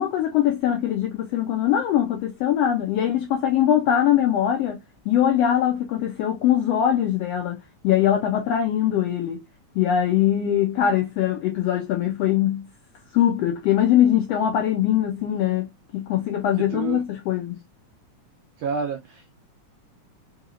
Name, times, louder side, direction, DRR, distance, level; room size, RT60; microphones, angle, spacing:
voice 1, 0.0-4.8 5.1-7.6 7.8-9.4 9.7-12.7 13.1-17.6, left 10 dB, 85° left, 1.4 m, -22 dB
voice 2, 16.6-17.0 18.6-19.3, right 5 dB, 80° right, 1.4 m, -29 dB
4.7 x 2.9 x 2.4 m
omnidirectional pair, 3.5 m